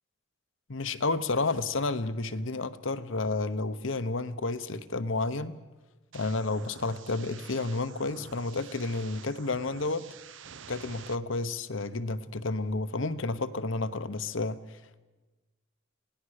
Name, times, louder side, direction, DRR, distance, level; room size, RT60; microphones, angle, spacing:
voice 1, 0.7-5.6 6.1-10.1 10.7-14.8, left 3 dB, 70° left, 12 dB, 1.0 m, -31 dB
sound 1, 6.1-11.2, right 7 dB, 65° right, 0.7 m, -49 dB
26.5 x 18.0 x 6.5 m, 1.2 s
head